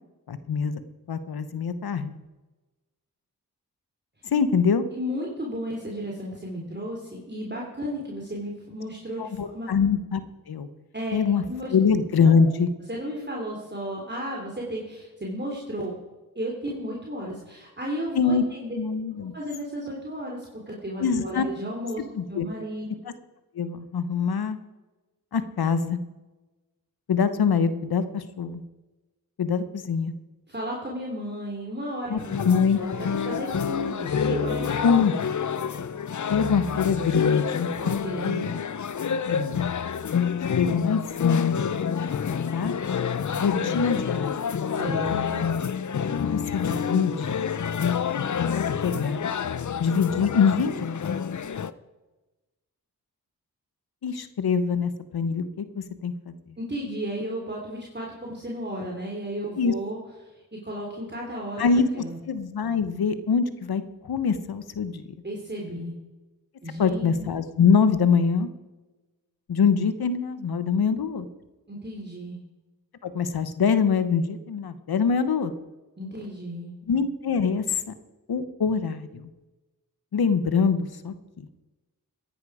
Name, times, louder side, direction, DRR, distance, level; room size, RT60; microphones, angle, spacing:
voice 1, 0.3-0.8 1.1-2.1 4.3-4.9 9.2-10.2 10.5-10.7 11.1-11.4 11.7-12.7 18.2-18.4 18.8-19.3 21.0-21.5 22.1-22.5 23.5-24.6 25.3-26.0 27.1-28.6 29.4-30.1 32.1-32.8 34.8-35.1 36.3-37.7 39.2-39.6 40.5-41.5 42.5-42.7 43.4-44.3 46.2-47.4 48.5-49.2 49.8-50.7 54.0-56.3 59.6-59.7 61.6-65.0 66.8-68.5 69.5-71.2 73.0-75.5 76.9-77.9 78.3-79.3 80.1-81.1, left 6 dB, 80° left, 12 dB, 1.1 m, -24 dB
voice 2, 4.9-9.7 10.9-11.7 12.2-12.4 12.9-15.9 16.3-18.7 19.3-22.0 22.3-22.9 30.5-32.5 32.8-34.9 37.8-38.5 43.3-43.7 44.6-45.4 56.6-60.0 60.3-61.7 61.9-62.2 65.2-65.9 66.6-67.2 71.7-72.4 76.0-76.7, equal, 30° right, -2 dB, 3.3 m, -34 dB
sound 1, 32.2-51.7, left 7 dB, 50° left, 0.7 m, -28 dB
15.5 x 10.5 x 4.9 m, 1.1 s
cardioid pair, 40°, 37 cm